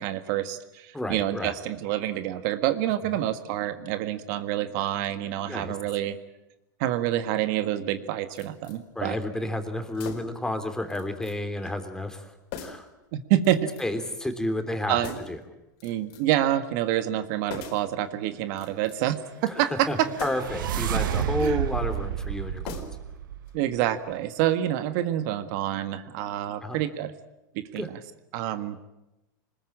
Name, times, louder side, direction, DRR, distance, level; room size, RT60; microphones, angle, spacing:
voice 1, 0.0-6.2 6.8-9.2 13.1-13.7 14.9-15.2 15.8-20.1 21.4-21.7 23.5-27.1 27.5-28.0 28.3-28.8, right 12 dB, 65° right, 10 dB, 1.7 m, -27 dB
voice 2, 0.9-1.5 5.5-5.7 8.9-12.9 13.8-15.4 19.5-22.8 26.6-26.8 27.7-27.9, left 1 dB, 5° left, 7 dB, 3.3 m, -31 dB
sound 1, 8.4-8.8 9.9-10.5 10.9-11.4 11.6-11.8 12.5-12.9 13.4-14.0 15.0-15.4 15.8-16.4 17.5-17.9 18.5-19.2 20.1-20.6 21.1-21.6 22.6-23.2 23.5-23.6, left 6 dB, 60° left, 4.2 m, -41 dB
sound 2, 19.6-23.8, right 9 dB, 85° right, 1.5 m, -30 dB
25.0 x 21.0 x 8.8 m, 0.97 s
supercardioid pair, 115°, 11 cm